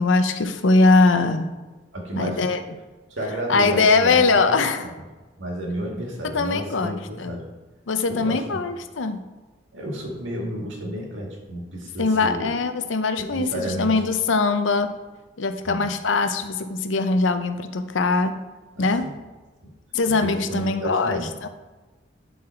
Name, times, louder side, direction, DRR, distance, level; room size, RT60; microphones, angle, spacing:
voice 1, 0.0-1.5 2.2-2.6 3.5-4.9 6.2-7.4 7.9-9.3 12.0-14.9 15.4-18.4 18.8-19.1 19.9-21.5, left 3 dB, 85° left, 9 dB, 0.7 m, -21 dB
voice 2, 1.9-2.4 3.1-4.9 5.4-7.4 8.1-8.6 9.7-12.5 13.2-14.0 15.7-15.9 18.8-19.1 20.2-21.3, right 1 dB, 85° right, -1 dB, 2.1 m, -31 dB
11.0 x 4.0 x 4.5 m, 1.2 s
head